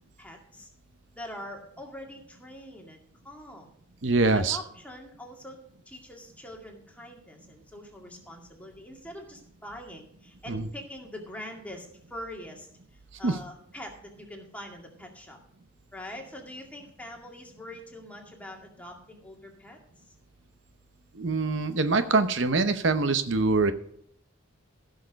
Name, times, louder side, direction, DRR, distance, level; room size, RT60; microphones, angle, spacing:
voice 1, 0.2-0.7 1.2-3.7 4.3-5.6 5.9-12.7 13.2-15.4 15.9-19.8, left 1 dB, 5° left, 1 dB, 2.1 m, -43 dB
voice 2, 4.0-4.6 10.5-10.7 13.2-13.3 21.2-23.7, right 3 dB, 65° right, 9 dB, 0.8 m, -24 dB
16.0 x 6.5 x 5.2 m, 0.67 s
head